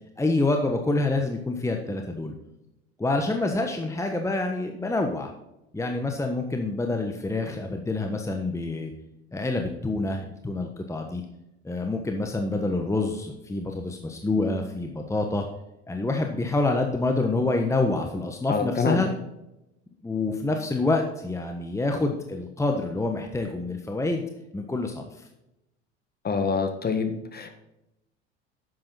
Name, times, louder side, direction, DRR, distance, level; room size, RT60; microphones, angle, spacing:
voice 1, 0.2-2.3 3.0-5.3 5.7-8.9 9.3-11.2 11.6-15.5 15.9-19.1 20.0-24.2 24.5-25.3, left 2 dB, 10° left, 3 dB, 1.3 m, -27 dB
voice 2, 18.5-19.1 26.2-27.5, left 5 dB, 30° left, 7 dB, 1.8 m, -26 dB
10.5 x 7.9 x 4.2 m, 0.91 s
hypercardioid pair, 70°, 33 cm